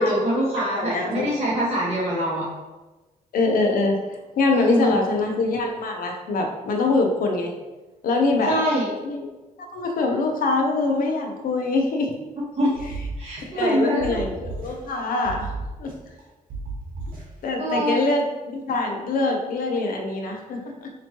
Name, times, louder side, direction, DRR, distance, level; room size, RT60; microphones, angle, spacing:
voice 1, 0.0-2.5 4.5-5.0 8.5-8.9 12.5-12.7 13.2-14.2 17.6-18.0, right 1 dB, 45° right, -7 dB, 1.3 m, -24 dB
voice 2, 0.6-1.3 3.3-4.0 4.4-7.6 8.0-8.6 9.0-9.3 9.6-12.2 13.6-15.5 15.8-15.9 17.4-20.9, left 3 dB, 70° left, 3 dB, 0.7 m, -24 dB
sound 1, 12.7-13.7 14.0-15.0 15.2-16.2 16.5-17.5, right 3 dB, 70° right, 1.1 m, -34 dB
4.3 x 3.0 x 2.9 m, 1.1 s
cardioid pair, 110°, 15 cm